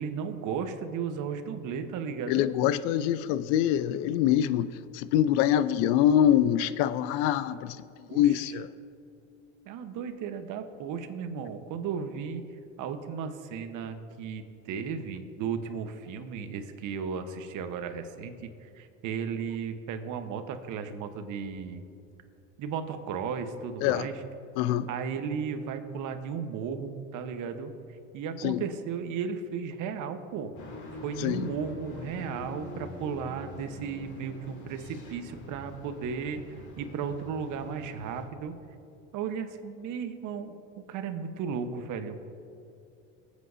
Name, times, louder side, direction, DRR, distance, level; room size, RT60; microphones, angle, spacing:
voice 1, 0.0-2.4 8.1-8.3 9.6-12.4 12.8-21.8 22.6-24.2 24.9-27.7 28.1-30.5 31.0-38.5 39.1-40.5 40.9-42.4, right 6 dB, 55° right, 1.2 m, -35 dB
voice 2, 2.3-7.8 8.1-8.7 23.8-24.1 24.6-24.9 28.4-28.7 31.2-31.5, left 11 dB, 75° left, 0.6 m, -25 dB
sound 1, 30.6-38.3, left 2 dB, 55° left, 2.9 m, -44 dB
23.0 x 8.4 x 2.8 m
supercardioid pair, 85°, 36 cm